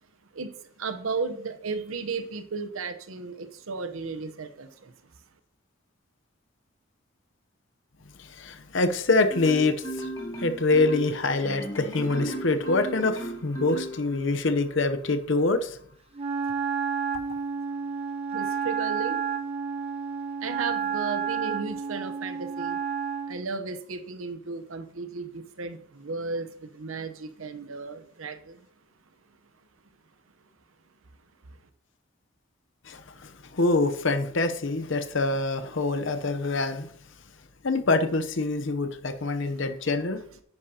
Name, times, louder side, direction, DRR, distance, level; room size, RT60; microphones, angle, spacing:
voice 1, 0.3-4.9 18.3-19.2 20.4-22.8 23.3-28.6, right 4 dB, 75° right, 0.9 m, -34 dB
voice 2, 8.2-10.1 10.4-15.8 32.9-36.9 37.6-40.2, left 3 dB, 60° left, 0.7 m, -25 dB
Marimba xylophone, 9.3-14.5, right 1 dB, 15° left, 2.0 m, -35 dB
Wind instrument woodwind instrument, 16.2-23.4, right 6 dB, 25° right, 0.9 m, -30 dB
10.5 x 9.6 x 2.8 m
head